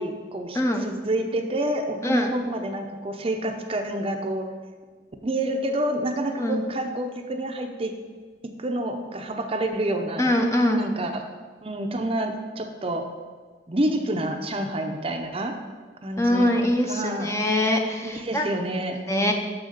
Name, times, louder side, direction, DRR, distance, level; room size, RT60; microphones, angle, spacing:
voice 1, 0.0-4.5 5.2-7.9 8.4-10.3 10.8-11.3 11.6-13.1 13.7-15.6 16.0-17.4 18.0-19.3, right 1 dB, 30° right, 4 dB, 0.7 m, -28 dB
voice 2, 0.5-0.8 2.0-2.3 6.4-6.6 10.2-10.8 16.2-18.5 19.1-19.3, left 1 dB, 15° left, 3 dB, 0.7 m, -23 dB
6.4 x 6.4 x 6.6 m, 1.5 s
head